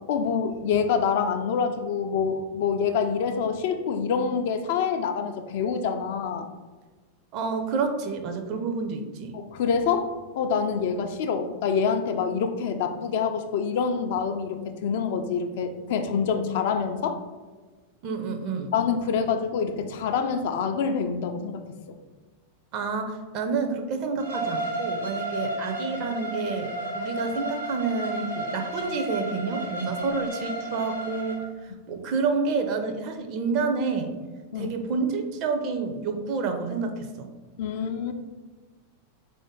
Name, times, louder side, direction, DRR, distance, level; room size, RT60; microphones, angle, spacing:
voice 1, 0.1-6.5 9.3-17.2 18.7-21.6 34.5-34.7 37.6-38.1, left 6 dB, 50° left, 7 dB, 0.3 m, -26 dB
voice 2, 7.3-9.4 18.0-18.7 22.7-34.1 34.5-37.3, right 4 dB, 40° right, 6 dB, 0.4 m, -29 dB
Bowed string instrument, 24.2-31.4, right 1 dB, 90° right, 0.9 m, -32 dB
3.6 x 2.5 x 3.6 m, 1.3 s
figure-of-eight pair, 90°, 0 cm